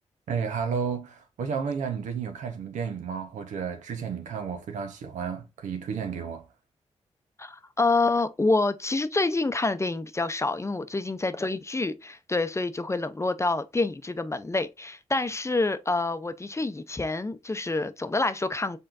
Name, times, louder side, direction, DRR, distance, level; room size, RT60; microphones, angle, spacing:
voice 1, 0.3-6.5, right 6 dB, 90° right, 0.8 m, -32 dB
voice 2, 7.4-18.8, left 3 dB, 25° left, 0.6 m, -27 dB
5.6 x 3.7 x 2.5 m
cardioid pair, 50°, 12 cm